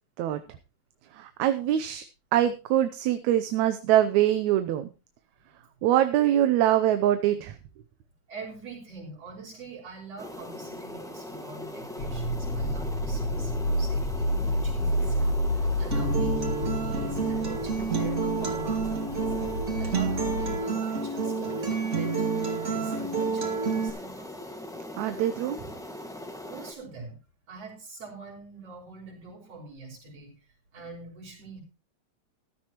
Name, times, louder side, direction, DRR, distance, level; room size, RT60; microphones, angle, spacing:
voice 1, 1.1-2.0 2.3-4.9 5.8-7.5 25.0-25.6, right 12 dB, 80° right, 10 dB, 2.1 m, -23 dB
voice 2, 8.3-19.3 19.8-22.2 22.5-24.3 26.5-27.2 27.5-30.3 30.7-31.6, right 3 dB, 55° right, -1 dB, 6.1 m, -44 dB
sound 1, 10.2-26.7, left 1 dB, ahead, 0.7 m, -40 dB
sound 2, 12.0-20.6, left 1 dB, 75° left, 5.1 m, -29 dB
Acoustic guitar, 15.9-23.9, right 4 dB, 30° right, 2.2 m, -29 dB
14.5 x 13.0 x 3.0 m, 0.32 s
omnidirectional pair, 3.3 m